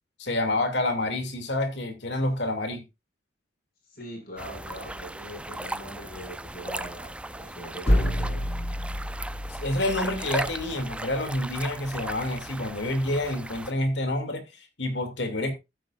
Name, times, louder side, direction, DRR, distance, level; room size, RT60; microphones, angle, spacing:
voice 1, 0.2-2.8 9.6-15.5, left 1 dB, 80° left, 2.6 m, -28 dB
voice 2, 3.9-8.5, equal, 55° left, 6.1 m, -42 dB
sound 1, 4.4-13.7, right 1 dB, 5° right, 0.4 m, -37 dB
sound 2, 7.9-11.7, equal, 35° left, 1.4 m, -29 dB
14.0 x 9.1 x 2.5 m
head